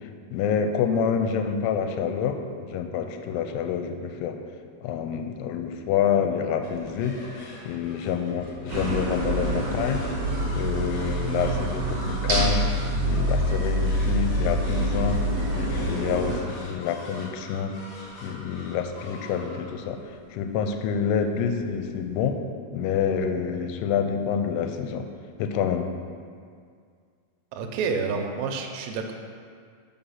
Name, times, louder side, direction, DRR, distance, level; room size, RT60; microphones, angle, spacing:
voice 1, 0.3-4.4 4.8-7.2 7.6-10.0 10.5-12.7 13.0-15.2 15.6-17.7 18.2-20.0 20.3-22.4 22.7-25.1 25.4-25.9, left 7 dB, 85° left, 6 dB, 2.5 m, -27 dB
sound 1, 6.6-22.2, left 1 dB, 55° left, 1.7 m, -44 dB
sound 2, 8.7-16.4, right 1 dB, 55° right, 1.6 m, -26 dB
voice 2, 27.5-29.1, right 5 dB, 90° right, 4 dB, 2.9 m, -29 dB
6.9 x 5.6 x 5.6 m, 2.1 s
omnidirectional pair, 4.8 m